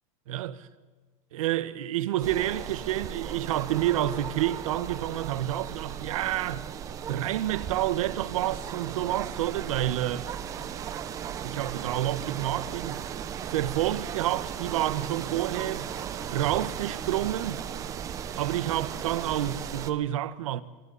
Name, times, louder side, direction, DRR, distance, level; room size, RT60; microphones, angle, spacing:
voice 1, 0.3-0.6 1.3-6.7 7.1-10.3 11.4-13.0 13.5-15.9 16.3-17.6 18.3-20.6, right 13 dB, 85° right, 1.4 m, -29 dB
sound 1, 2.2-19.9, right 8 dB, 20° right, 0.9 m, -36 dB
27.5 x 27.5 x 4.2 m
supercardioid pair, 175°, 17 cm